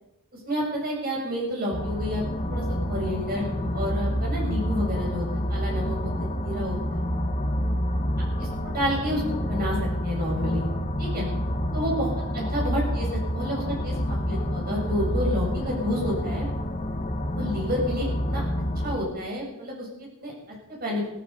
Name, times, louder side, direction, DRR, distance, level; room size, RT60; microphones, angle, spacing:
voice 1, 0.4-2.2 2.5-7.0 8.6-9.8 10.0-10.7 11.0-11.3 11.7-12.1 12.3-13.1 13.3-16.5 17.3-18.4 18.8-20.3 20.7-21.0, equal, 45° right, -2 dB, 7.6 m, -30 dB
sound 1, 1.7-19.0, equal, 30° left, 1.6 m, -28 dB
16.5 x 15.0 x 5.5 m, 0.90 s
head